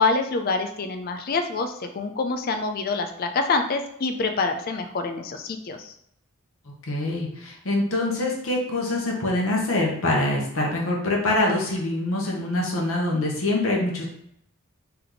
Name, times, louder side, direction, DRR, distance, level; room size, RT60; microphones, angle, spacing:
voice 1, 0.0-5.9, left 3 dB, 40° left, 6 dB, 0.4 m, -26 dB
voice 2, 6.9-14.1, left 2 dB, 65° left, -1 dB, 1.0 m, -24 dB
3.4 x 3.0 x 3.8 m, 0.73 s
head